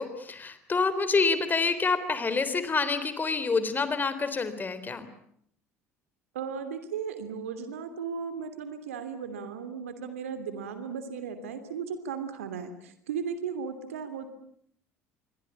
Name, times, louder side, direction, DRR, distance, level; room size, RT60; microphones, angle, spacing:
voice 1, 0.0-5.1, left 4 dB, 25° left, 12 dB, 3.7 m, -27 dB
voice 2, 6.3-14.3, right 6 dB, 70° right, 10 dB, 3.0 m, -36 dB
26.5 x 23.0 x 8.6 m, 0.69 s
figure-of-eight pair, 60°, 8 cm